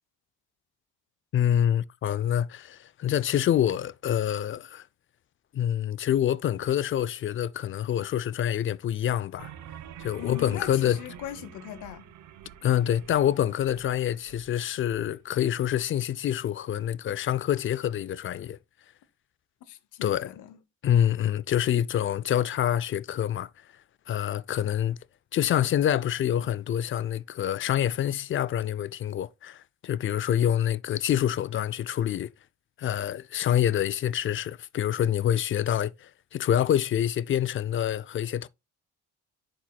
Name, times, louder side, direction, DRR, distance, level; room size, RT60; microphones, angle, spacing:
voice 1, 1.3-4.8 5.5-9.5 10.0-11.0 12.6-18.6 20.0-20.3 20.8-23.5 24.1-25.0 25.3-32.3 32.8-38.5, left 10 dB, 40° left, 0.4 m, -26 dB
sound 1, 9.4-15.1, right 9 dB, 65° right, 0.8 m, -47 dB
voice 2, 10.2-12.1 19.7-20.6, left 12 dB, 75° left, 0.8 m, -40 dB
10.0 x 4.4 x 2.2 m
supercardioid pair, 80°, 31 cm